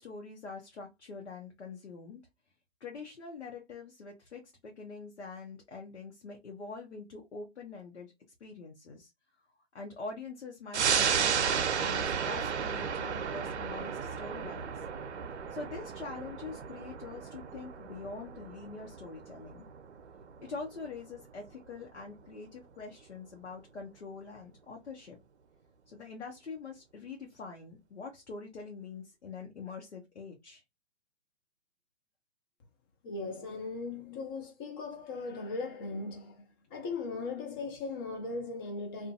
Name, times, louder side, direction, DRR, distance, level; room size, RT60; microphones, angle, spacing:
voice 1, 0.0-2.2 2.8-8.1 8.4-9.1 9.7-14.8 15.5-19.7 20.4-25.2 25.9-30.6, left 4 dB, 85° left, 0.8 m, -44 dB
sound 1, 10.7-21.7 22.1-22.2, right 7 dB, 80° right, 0.6 m, -33 dB
voice 2, 33.0-36.4 36.7-39.1, left 3 dB, 20° left, 0.4 m, -38 dB
2.5 x 2.2 x 2.6 m
hypercardioid pair, 130°, 33 cm